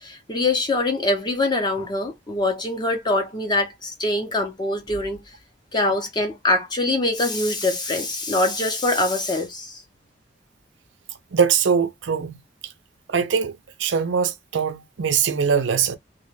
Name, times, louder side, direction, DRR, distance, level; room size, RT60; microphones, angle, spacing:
voice 1, 0.0-5.2 5.7-9.8, left 2 dB, 25° left, 0.6 m, -23 dB
voice 2, 11.3-12.4 13.1-13.5 13.8-16.0, right 6 dB, 70° right, 0.4 m, -22 dB
2.2 x 2.2 x 3.1 m
head